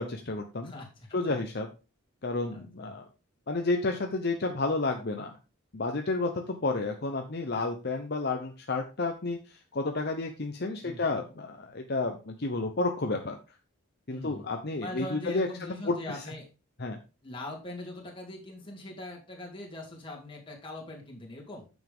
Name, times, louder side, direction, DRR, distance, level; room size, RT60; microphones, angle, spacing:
voice 1, 0.0-0.7 1.1-1.7 2.2-3.0 3.5-5.3 5.7-13.4 14.1-16.2 16.8-17.0, left 3 dB, 50° left, 4 dB, 0.8 m, -31 dB
voice 2, 0.6-1.4 2.5-3.0 10.8-11.2 14.1-14.4 14.8-16.5 17.2-21.6, left 1 dB, 25° left, -2 dB, 2.9 m, -42 dB
9.3 x 7.3 x 3.6 m, 0.31 s
head